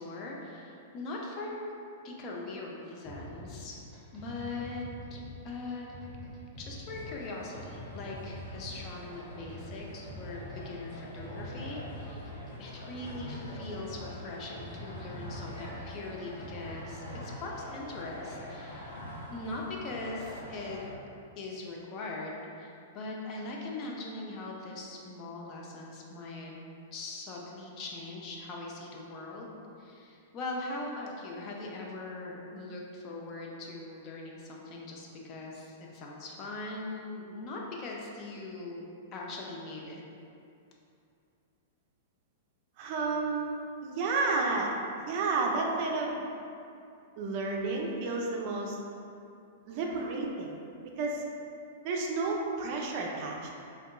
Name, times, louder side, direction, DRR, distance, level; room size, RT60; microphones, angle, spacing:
voice 1, 0.0-1.7 2.0-3.8 4.1-4.8 5.1-5.9 6.6-12.3 12.6-19.0 19.3-20.8 21.4-26.6 26.9-40.0, left 2 dB, 40° left, -2 dB, 0.5 m, -41 dB
sound 1, 3.0-17.0, equal, 10° right, 0.9 m, -46 dB
sound 2, 6.9-20.9, left 1 dB, 85° left, 0.8 m, -44 dB
voice 2, 42.8-44.7 45.1-46.2 47.2-48.8 49.7-50.5 51.0-51.2 51.8-53.5, right 3 dB, 50° right, 0 dB, 0.4 m, -31 dB
3.5 x 2.3 x 2.2 m, 2.6 s
figure-of-eight pair, 105°, 0 cm